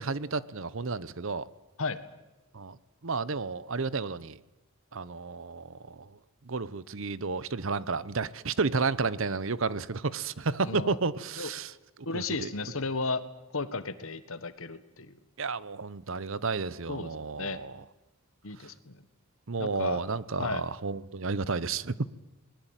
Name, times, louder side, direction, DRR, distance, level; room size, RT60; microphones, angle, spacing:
voice 1, 0.0-1.5 2.5-2.8 3.0-4.4 4.9-6.2 6.5-11.7 12.1-12.5 15.4-17.8 18.6-18.7 19.5-22.1, right 4 dB, 60° right, 0.8 m, -32 dB
voice 2, 10.6-11.0 11.4-11.5 12.0-13.2 13.5-15.1 16.9-17.1 17.4-17.6 18.4-19.0 19.6-20.0 20.4-20.6, left 3 dB, 65° left, 1.5 m, -34 dB
20.5 x 20.0 x 9.1 m
head